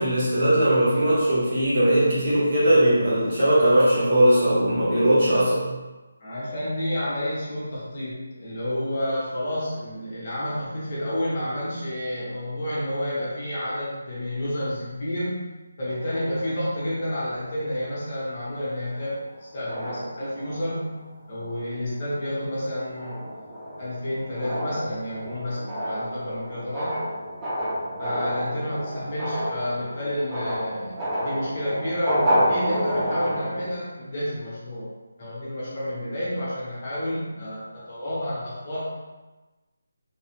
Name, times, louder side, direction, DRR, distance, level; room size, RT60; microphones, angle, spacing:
voice 1, 0.0-5.6 24.3-24.4, right 1 dB, 30° right, -9 dB, 1.2 m, -19 dB
voice 2, 6.2-15.5 15.8-20.9 21.3-23.3 23.8-27.0 28.0-34.9 35.2-39.0, left 1 dB, 35° left, -9 dB, 1.3 m, -30 dB
sound 1, 15.9-17.7 18.4-18.6 18.9-19.3 19.7-21.0 21.4-21.7 22.2-33.7, equal, 10° right, 0.4 m, -30 dB
3.5 x 3.0 x 2.9 m, 1.1 s
figure-of-eight pair, 170°, 0 cm